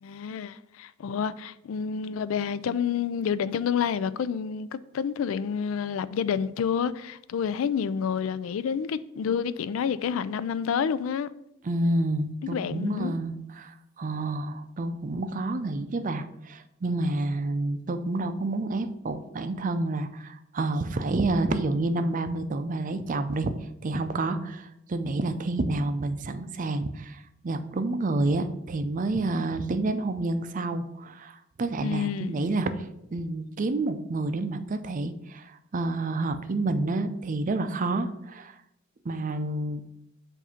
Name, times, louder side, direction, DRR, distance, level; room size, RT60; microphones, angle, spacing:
voice 1, 0.0-11.3 12.4-13.1 31.8-32.4, left 7 dB, 75° left, 0.3 m, -29 dB
voice 2, 11.6-23.5 23.8-32.9 33.1-38.5 39.0-39.8, right 2 dB, 40° right, 0.5 m, -29 dB
7.3 x 2.7 x 5.7 m
head